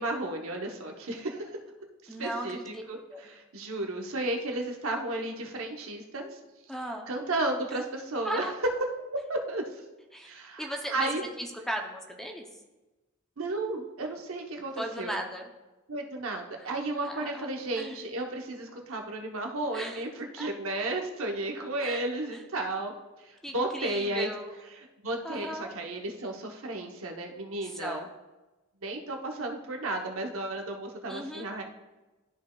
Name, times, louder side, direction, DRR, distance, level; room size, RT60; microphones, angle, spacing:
voice 1, 0.0-1.6 2.0-6.4 7.1-8.4 9.3-9.8 10.2-10.6 10.9-11.2 13.4-15.2 15.9-22.9 23.2-24.3 24.7-28.1 28.8-31.6, right 2 dB, 70° right, 3 dB, 0.9 m, -33 dB
voice 2, 2.1-2.8 3.1-3.2 6.7-7.1 8.2-8.5 10.1-10.3 10.6-12.5 14.8-15.5 16.6-16.7 17.0-17.5 17.8-18.1 19.7-20.0 20.4-20.5 21.8-22.4 23.4-24.5 25.2-25.7 27.6-28.1 31.1-31.5, equal, ahead, 2 dB, 0.6 m, -37 dB
13.0 x 5.2 x 2.3 m, 1.1 s
head